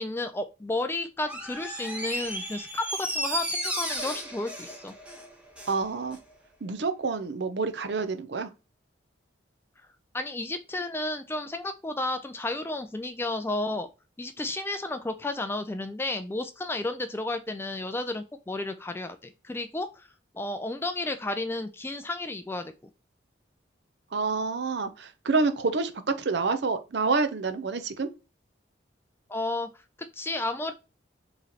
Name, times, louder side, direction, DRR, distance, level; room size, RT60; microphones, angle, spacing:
voice 1, 0.0-4.9 10.1-13.9 14.2-19.9 20.3-22.7 29.3-29.7 30.2-30.7, left 2 dB, 10° left, 0.3 m, -32 dB
Door, 1.2-5.8 6.1-6.2, right 1 dB, 5° right, 0.9 m, -34 dB
voice 2, 5.7-6.2 6.6-8.5 24.1-28.1, right 4 dB, 65° right, 0.6 m, -28 dB
4.8 x 3.1 x 2.8 m
head